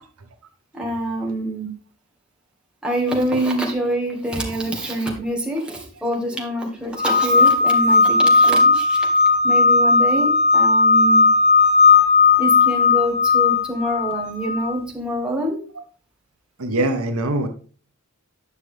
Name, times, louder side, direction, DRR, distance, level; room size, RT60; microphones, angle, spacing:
voice 1, 0.7-1.7 2.8-9.1 9.4-11.3 12.4-15.6, right 1 dB, 5° right, -2 dB, 1.8 m, -25 dB
sound 1, 7.0-14.8, left 4 dB, 25° left, 0.7 m, -16 dB
voice 2, 16.6-17.5, right 1 dB, 75° right, 6 dB, 1.1 m, -23 dB
9.9 x 6.1 x 3.4 m, 0.40 s
head